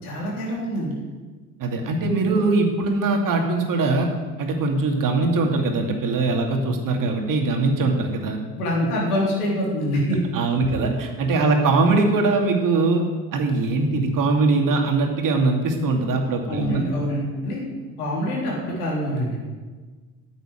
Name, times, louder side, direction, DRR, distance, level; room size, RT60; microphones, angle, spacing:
voice 1, 0.0-1.0 2.4-2.5 8.5-10.2 16.5-17.6 18.0-19.4, equal, 80° left, -3 dB, 3.6 m, -25 dB
voice 2, 1.6-4.1 4.4-8.4 10.3-13.0 13.3-16.8, right 3 dB, 45° right, 3 dB, 2.6 m, -21 dB
9.5 x 8.0 x 9.3 m, 1.4 s
figure-of-eight pair, 55°, 44 cm